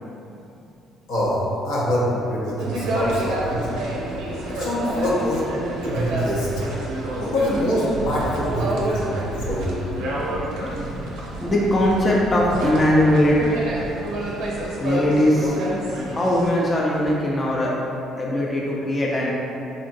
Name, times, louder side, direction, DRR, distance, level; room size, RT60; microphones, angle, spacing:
voice 1, 1.1-3.7 4.5-5.5 5.8-6.5 7.2-9.8 10.6-10.8, equal, 75° left, -7 dB, 0.7 m, -24 dB
sound 1, 2.6-16.5, right 1 dB, 75° right, 0.5 m, -28 dB
voice 2, 10.0-11.0 11.3-13.4 14.8-15.6 16.0-17.7 18.2-19.3, left 1 dB, 30° left, -4 dB, 0.5 m, -21 dB
3.8 x 2.1 x 2.6 m, 2.8 s
hypercardioid pair, 60°, 0 cm